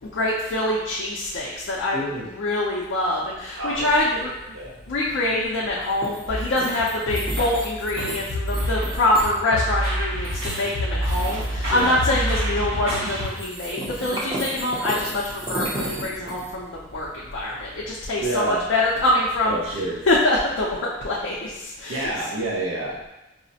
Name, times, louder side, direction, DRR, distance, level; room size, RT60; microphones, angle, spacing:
voice 1, 0.0-4.3 4.9-19.6 20.1-22.1, left 1 dB, 60° left, -5 dB, 0.4 m, -24 dB
voice 2, 1.9-2.3 3.6-4.2 4.5-4.7 11.7-12.0 18.2-18.6 19.4-20.1 21.9-23.1, right 2 dB, 80° right, -2 dB, 0.6 m, -28 dB
sound 1, 3.7-20.2, right 1 dB, 25° right, 0.6 m, -36 dB
sound 2, 6.3-13.3, equal, 65° right, 1.2 m, -27 dB
4.8 x 2.0 x 2.7 m, 0.97 s
head